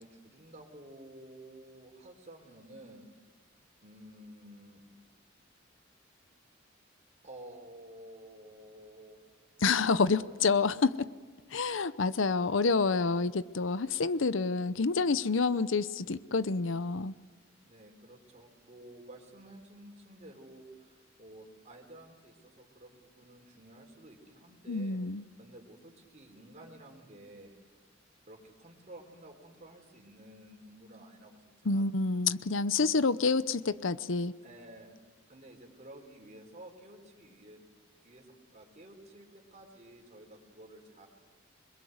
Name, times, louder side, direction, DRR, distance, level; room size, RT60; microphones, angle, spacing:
voice 1, 0.0-3.1 3.8-4.8 7.2-9.2 10.1-10.8 13.8-14.2 17.6-25.0 25.4-27.6 28.2-32.7 34.4-35.0 35.3-37.6 38.0-41.1, right 1 dB, 40° right, 1 dB, 4.0 m, -52 dB
voice 2, 9.6-11.1 11.5-17.1 24.7-25.2 31.6-34.3, left 4 dB, 75° left, 16 dB, 0.8 m, -28 dB
26.5 x 22.0 x 8.0 m, 1.4 s
head